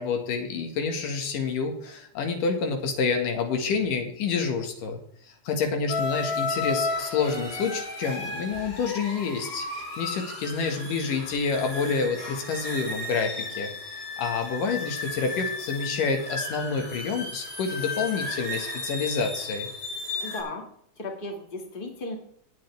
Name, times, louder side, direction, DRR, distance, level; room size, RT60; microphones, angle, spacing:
voice 1, 0.0-19.7, left 5 dB, 85° left, 4 dB, 3.5 m, -28 dB
sound 1, 5.9-20.4, left 3 dB, 55° left, 5.1 m, -34 dB
voice 2, 20.2-20.7 21.0-22.2, left 2 dB, 20° left, 2 dB, 2.0 m, -35 dB
20.5 x 7.7 x 3.5 m, 0.67 s
omnidirectional pair, 3.7 m